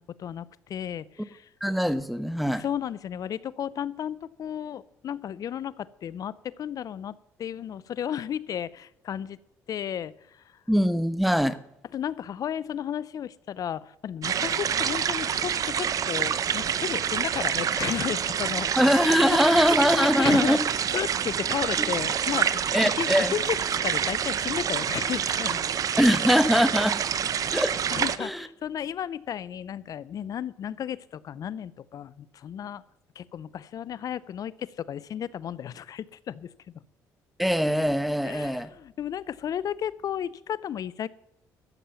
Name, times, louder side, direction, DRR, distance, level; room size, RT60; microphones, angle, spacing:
voice 1, 0.0-1.5 2.6-9.4 9.7-10.6 11.9-18.7 19.0-19.6 20.0-20.6 20.9-22.5 23.0-25.7 27.9-32.8 33.2-36.8 38.2-41.1, left 9 dB, 55° left, 19 dB, 0.6 m, -33 dB
voice 2, 1.6-2.6 10.7-11.6 18.7-20.6 21.8-21.9 22.7-23.3 26.0-27.0 27.5-27.7 28.2-28.5 37.4-38.7, equal, ahead, 13 dB, 1.0 m, -22 dB
sound 1, 14.2-28.2, right 8 dB, 50° right, 0.7 m, -27 dB
13.0 x 7.4 x 7.0 m, 0.80 s
supercardioid pair, 70°, 8 cm